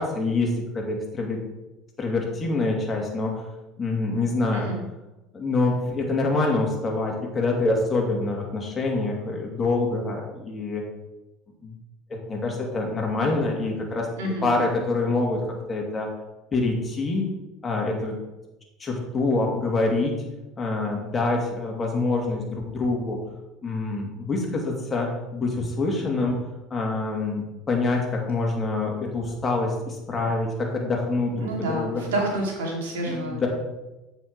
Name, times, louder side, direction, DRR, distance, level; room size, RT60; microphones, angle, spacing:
voice 1, 0.0-1.4 2.0-3.4 3.8-4.7 5.3-10.8 11.6-11.7 12.1-14.1 14.4-15.4 15.7-16.1 16.5-17.3 17.6-18.1 18.8-20.1 20.6-23.2 23.6-26.3 26.7-32.0 33.0-33.5, left 3 dB, 25° left, 0 dB, 2.4 m, -26 dB
voice 2, 14.2-14.5 31.4-33.5, right 1 dB, 85° right, -1 dB, 2.5 m, -28 dB
7.6 x 5.9 x 4.7 m, 1.0 s
supercardioid pair, 95°, 0 cm